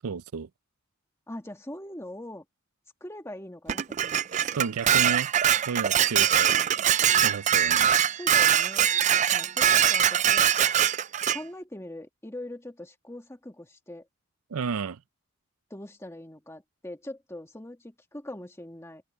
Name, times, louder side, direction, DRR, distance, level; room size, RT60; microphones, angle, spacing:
voice 1, 0.0-0.5 4.4-5.3 5.7-6.5 7.2-7.9 14.5-15.0, right 6 dB, 90° right, 0.5 m, -32 dB
voice 2, 1.3-2.4 3.0-4.2 8.2-8.9 9.3-10.5 11.3-14.1 15.7-19.0, left 1 dB, 15° left, 1.5 m, -42 dB
Dishes pots and pans, 3.7-11.4, right 9 dB, 35° right, 0.3 m, -22 dB
open air
head